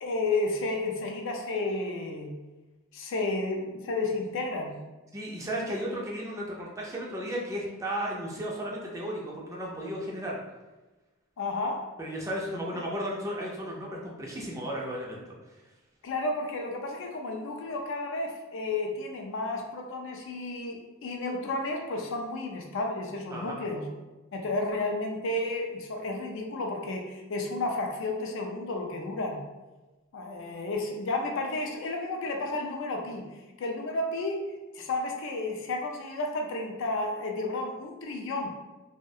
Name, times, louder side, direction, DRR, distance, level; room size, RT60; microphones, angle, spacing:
voice 1, 0.0-2.3 2.9-4.8 11.4-11.8 16.0-23.8 24.3-29.4 30.1-33.3 33.6-34.4 34.8-38.5, left 2 dB, 65° left, 2 dB, 0.4 m, -32 dB
voice 2, 5.1-10.4 12.0-15.4 23.3-23.6, equal, 15° right, -3 dB, 0.4 m, -34 dB
2.3 x 2.0 x 2.7 m, 1.1 s
head